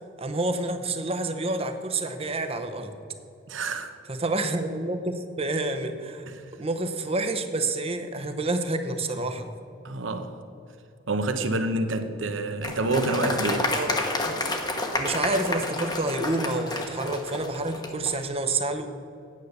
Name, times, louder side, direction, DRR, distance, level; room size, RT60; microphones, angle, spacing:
voice 1, 0.2-2.9 4.1-6.3 6.6-9.5 13.7-14.0 14.3-14.4 15.0-18.9, right 2 dB, 30° right, 0.8 m, -28 dB
voice 2, 3.5-3.9 6.3-6.4 9.8-10.4 11.1-13.7, right 2 dB, 75° right, 0.9 m, -28 dB
Applause, 12.6-18.1, left 2 dB, 20° left, 1.1 m, -30 dB
9.5 x 8.2 x 6.6 m
head